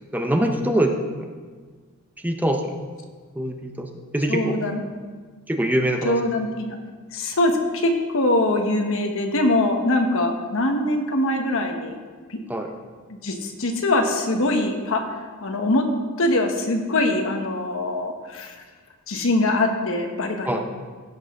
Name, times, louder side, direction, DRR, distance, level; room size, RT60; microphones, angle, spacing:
voice 1, 0.1-1.3 2.2-2.7 3.4-4.6 5.5-6.2 12.5-12.7 20.5-20.6, right 1 dB, 10° right, 3 dB, 0.6 m, -23 dB
voice 2, 4.3-4.9 6.0-6.8 7.1-12.0 12.3-12.4 13.2-15.9 16.2-18.5 19.1-20.6, left 1 dB, 65° left, 4 dB, 1.2 m, -23 dB
15.5 x 6.6 x 3.7 m, 1.5 s
head